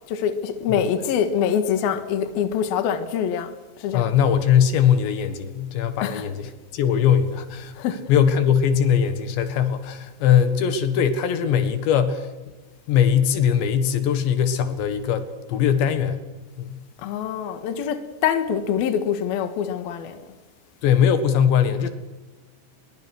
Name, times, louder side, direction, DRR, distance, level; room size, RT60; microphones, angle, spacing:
voice 1, 0.0-4.2 6.0-6.3 7.7-8.1 17.0-20.2, left 8 dB, 65° left, 3.3 m, -25 dB
voice 2, 3.9-7.8 8.1-12.3 12.9-16.2 16.6-16.8 20.8-21.9, left 8 dB, 80° left, 3.9 m, -20 dB
25.0 x 22.5 x 6.4 m
omnidirectional pair, 5.1 m